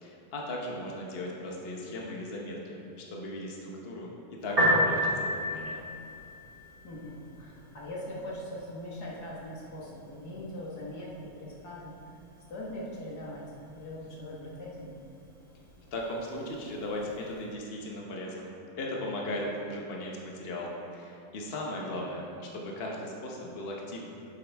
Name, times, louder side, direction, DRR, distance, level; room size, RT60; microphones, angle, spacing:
voice 1, 0.0-4.1 4.4-5.8 15.9-24.0, left 1 dB, 45° left, -2 dB, 1.2 m, -37 dB
Piano, 4.4-17.4, equal, 70° right, 2.5 m, -35 dB
voice 2, 6.8-12.2 12.5-13.4 13.7-14.9, left 1 dB, 90° left, -5 dB, 2.1 m, -41 dB
10.0 x 7.6 x 3.5 m, 2.7 s
omnidirectional pair, 1.6 m